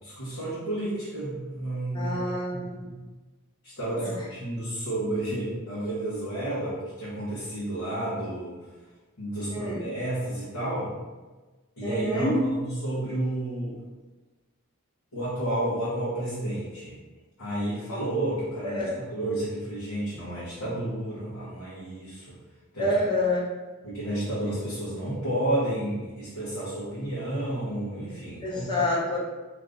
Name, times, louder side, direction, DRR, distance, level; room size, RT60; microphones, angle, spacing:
voice 1, 0.0-2.2 2.5-3.0 3.6-8.6 9.2-10.9 11.8-13.8 15.1-16.9 17.4-22.4 22.7-22.9 23.8-28.8, right 1 dB, 85° left, -10 dB, 1.0 m, -31 dB
voice 2, 1.9-2.8 4.0-4.1 9.5-9.8 11.8-12.4 18.6-18.9 22.8-23.4 28.4-29.2, left 1 dB, 20° left, -5 dB, 0.7 m, -27 dB
2.6 x 2.5 x 3.5 m, 1.2 s
head